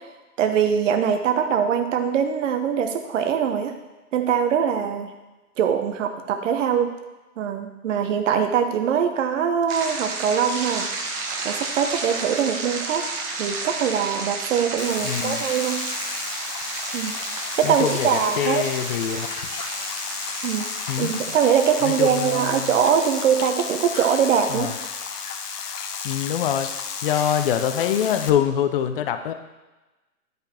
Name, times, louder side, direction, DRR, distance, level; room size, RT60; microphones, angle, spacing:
voice 1, 0.4-3.7 4.1-5.1 5.6-6.9 7.4-10.9 11.4-13.0 13.4-15.8 16.9-17.1 17.6-18.6 20.4-20.7 21.0-24.7, right 7 dB, 50° right, 6 dB, 0.9 m, -22 dB
sound 1, 9.7-25.9, right 3 dB, 15° right, 0.6 m, -33 dB
sound 2, 14.8-28.3, left 6 dB, 80° left, 1.0 m, -33 dB
voice 2, 15.0-15.4 17.6-19.3 20.9-21.4 21.8-22.7 24.5-24.7 26.0-26.7 27.0-29.3, left 9 dB, 35° left, 9 dB, 0.6 m, -24 dB
10.5 x 5.2 x 4.3 m, 1.1 s
hypercardioid pair, 140°, 46 cm